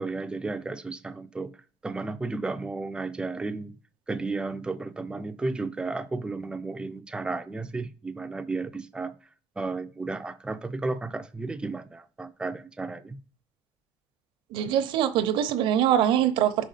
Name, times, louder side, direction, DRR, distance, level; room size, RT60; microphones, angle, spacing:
voice 1, 0.0-1.5 1.8-3.8 4.1-9.2 9.6-13.2, right 3 dB, 10° right, 0.4 m, -33 dB
voice 2, 14.5-16.7, right 10 dB, 70° right, 0.8 m, -23 dB
5.7 x 5.1 x 5.7 m
cardioid pair, 155°, 9 cm